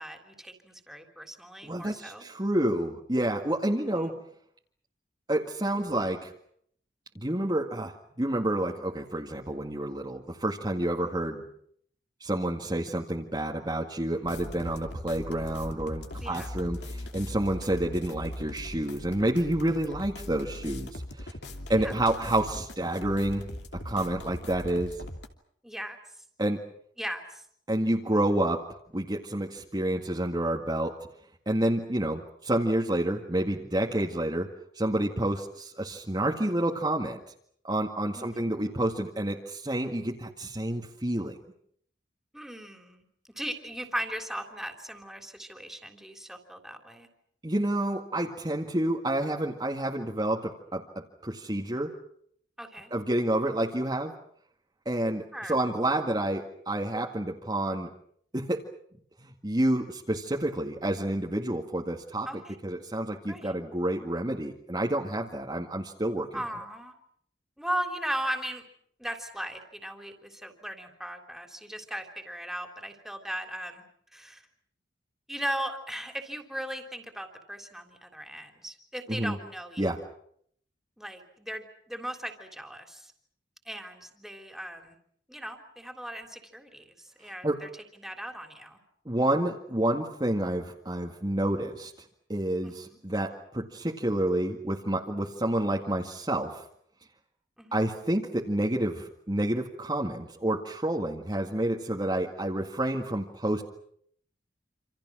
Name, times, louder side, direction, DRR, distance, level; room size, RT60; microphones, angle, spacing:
voice 1, 0.0-2.2 3.8-4.2 16.2-16.5 21.6-22.0 25.6-26.0 27.0-27.4 38.1-38.6 42.3-47.1 52.6-52.9 55.3-55.5 62.2-62.6 63.3-63.5 66.3-66.9 67.6-68.6 69.0-73.8 74.1-74.4 75.3-79.9 81.0-83.1 83.6-85.0 85.3-88.8 92.6-93.0 97.6-98.0, right 1 dB, ahead, 5 dB, 3.4 m, -38 dB
voice 2, 1.6-4.1 5.3-6.3 7.2-11.4 12.2-21.3 21.7-23.5 23.7-25.0 26.4-26.6 27.7-28.6 28.9-31.0 31.5-34.5 34.7-37.2 37.6-41.4 47.4-51.9 52.9-54.1 54.9-57.9 58.3-58.7 59.2-62.3 62.6-66.3 79.1-79.4 79.8-80.0 87.4-87.7 89.1-91.9 92.3-96.6 97.7-103.6, right 1 dB, 25° right, 0 dB, 2.0 m, -29 dB
sound 1, 14.2-25.3, left 1 dB, 65° left, 2.8 m, -40 dB
28.0 x 27.0 x 6.2 m, 0.66 s
head